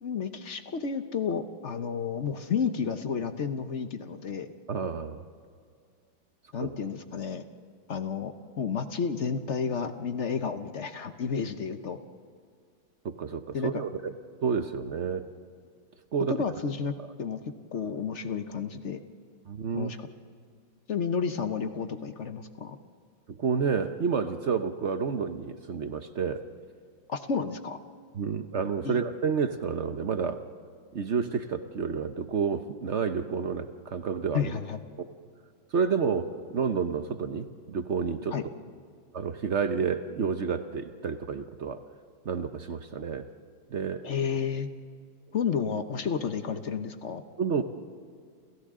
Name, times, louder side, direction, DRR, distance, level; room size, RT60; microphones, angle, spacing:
voice 1, 0.0-4.5 6.5-7.4 7.9-12.0 13.5-13.8 16.3-16.9 17.2-17.4 17.7-19.0 19.7-20.1 20.9-22.8 27.1-27.8 28.8-29.0 34.3-34.8 38.3-38.4 44.0-44.7 45.3-47.2, left 6 dB, 50° left, 9 dB, 0.9 m, -31 dB
voice 2, 4.7-5.3 6.6-6.7 13.0-14.1 14.4-15.3 16.1-16.4 19.5-19.9 23.3-26.4 28.1-30.4 30.9-34.5 35.0-35.1 35.7-38.4 39.1-41.8 42.2-43.3 43.7-44.0 47.4-47.6, right 6 dB, 55° right, 9 dB, 0.8 m, -30 dB
30.0 x 28.5 x 3.7 m, 2.3 s
omnidirectional pair, 2.2 m